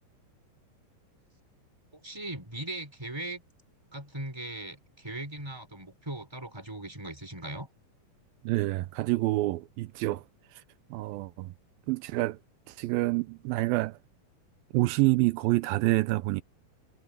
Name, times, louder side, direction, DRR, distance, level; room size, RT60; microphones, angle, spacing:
voice 1, 1.9-3.4 3.9-7.7 11.1-11.3, right 1 dB, 5° right, 4.3 m, -39 dB
voice 2, 8.4-10.2 10.5-10.6 10.9-11.5 11.9-12.4 12.7-14.0 14.7-16.4, right 19 dB, 85° right, 2.4 m, -27 dB
omnidirectional pair, 4.2 m